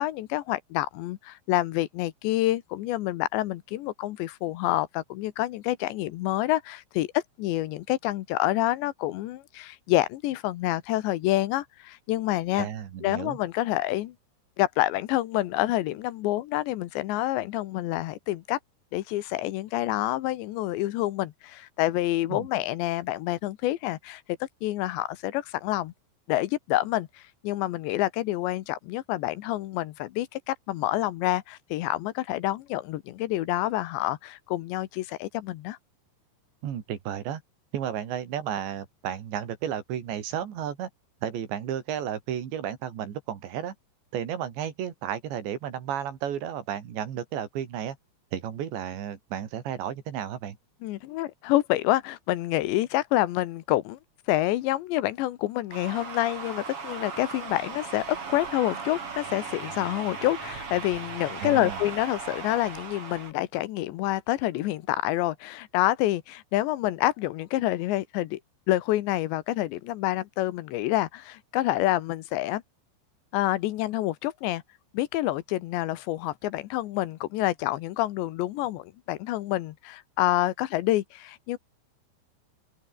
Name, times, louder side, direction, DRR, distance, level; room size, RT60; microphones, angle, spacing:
voice 1, 0.0-12.7 13.0-14.1 14.6-18.6 18.9-24.2 24.6-25.9 26.3-27.1 27.4-35.8 50.8-54.0 54.3-68.4 68.7-72.6 73.3-74.6 74.9-81.6, left 15 dB, 85° left, 3.3 m, -27 dB
voice 2, 12.6-13.4 22.3-22.5 36.6-37.4 37.7-40.9 41.2-43.7 44.1-48.0 48.3-50.6 61.4-61.8, right 9 dB, 75° right, 4.9 m, -33 dB
sound 1, 55.7-63.3, right 5 dB, 35° right, 3.8 m, -38 dB
open air
omnidirectional pair, 5.2 m